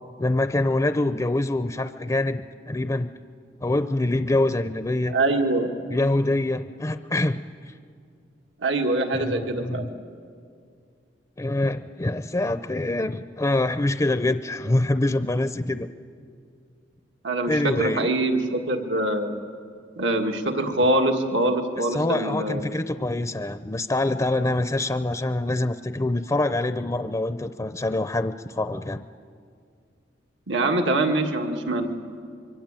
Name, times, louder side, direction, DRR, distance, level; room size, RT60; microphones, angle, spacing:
voice 1, 0.2-3.1 3.6-5.1 5.9-7.4 7.7-7.8 9.1-9.9 11.4-15.9 17.5-18.1 21.8-29.0, left 2 dB, 20° left, 11 dB, 0.6 m, -25 dB
voice 2, 5.1-5.7 8.6-9.9 17.2-19.3 20.0-22.7 30.5-31.9, right 2 dB, 85° right, 4 dB, 1.9 m, -24 dB
24.5 x 24.0 x 8.9 m, 2.3 s
head